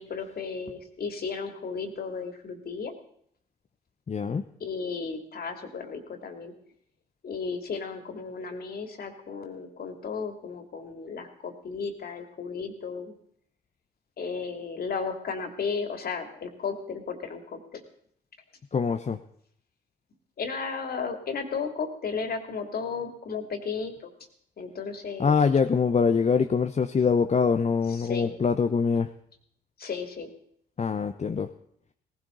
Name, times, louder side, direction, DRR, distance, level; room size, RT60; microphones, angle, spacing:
voice 1, 0.0-2.9 4.6-6.5 7.2-13.1 14.2-17.8 20.4-24.1 24.6-25.4 27.9-28.3 29.8-30.3, left 5 dB, 45° left, 5 dB, 3.0 m, -34 dB
voice 2, 4.1-4.4 18.7-19.2 25.2-29.1 30.8-31.5, left 5 dB, 30° left, 7 dB, 1.0 m, -24 dB
18.5 x 17.0 x 4.0 m, 0.67 s
hypercardioid pair, 50°, 21 cm